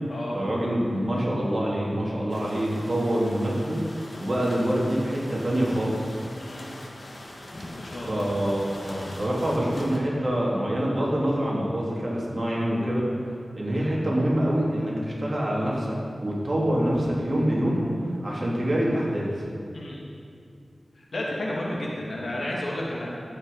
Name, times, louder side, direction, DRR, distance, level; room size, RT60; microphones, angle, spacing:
voice 1, 0.3-3.8 4.2-6.1 7.9-17.8 18.2-19.3, equal, 45° right, -4 dB, 3.0 m, -26 dB
sound 1, 2.3-10.0, left 1 dB, 45° left, 1.8 m, -42 dB
voice 2, 7.8-8.3 19.7-20.0 21.0-23.1, left 1 dB, 70° left, -4 dB, 2.6 m, -32 dB
12.5 x 8.6 x 5.5 m, 2.5 s
wide cardioid pair, 80°, 0 cm